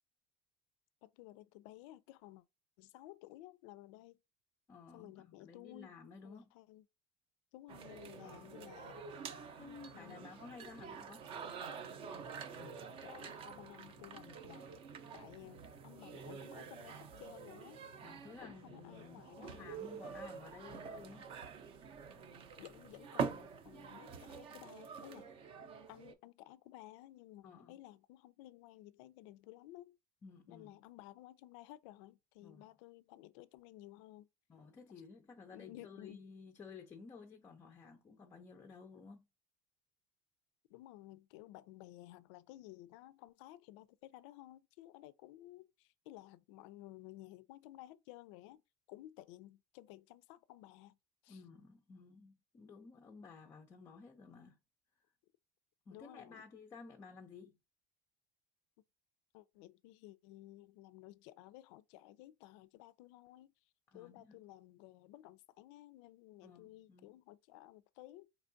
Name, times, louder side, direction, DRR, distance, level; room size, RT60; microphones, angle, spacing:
voice 1, 1.0-2.4 2.8-4.2 4.9-5.9 6.2-6.8 7.5-9.0 9.9-10.3 12.5-14.7 15.1-17.8 18.4-19.8 22.6-25.3 25.9-30.0 30.5-34.3 35.5-36.2 40.7-48.6 48.9-51.0 51.2-51.4 55.9-56.4 59.3-63.5 63.9-68.3, left 15 dB, 85° left, 0.4 m, -55 dB
voice 2, 4.7-6.5 8.2-8.6 9.6-11.3 18.0-21.3 27.4-27.8 30.2-30.8 32.4-32.7 34.5-39.3 51.3-54.6 55.9-57.6 63.9-64.4 66.4-67.1, left 5 dB, 15° left, 0.4 m, -54 dB
sound 1, 7.7-26.1, right 6 dB, 40° right, 0.5 m, -47 dB
4.5 x 2.9 x 2.6 m
cardioid pair, 170°, 15 cm